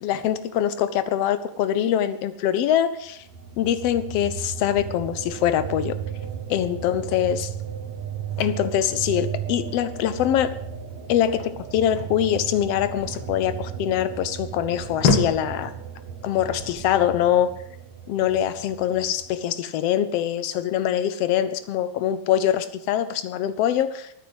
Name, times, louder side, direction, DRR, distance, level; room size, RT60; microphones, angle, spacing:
voice 1, 0.0-3.2 3.6-6.0 6.5-7.5 8.4-10.6 11.1-15.7 16.2-17.5 18.1-24.1, left 10 dB, 85° left, 13 dB, 1.3 m, -23 dB
sound 1, 3.3-19.4, right 8 dB, 60° right, 3.0 m, -35 dB
sound 2, 4.5-17.6, left 4 dB, 50° left, 1.8 m, -33 dB
13.5 x 9.5 x 8.0 m, 0.73 s
omnidirectional pair, 3.6 m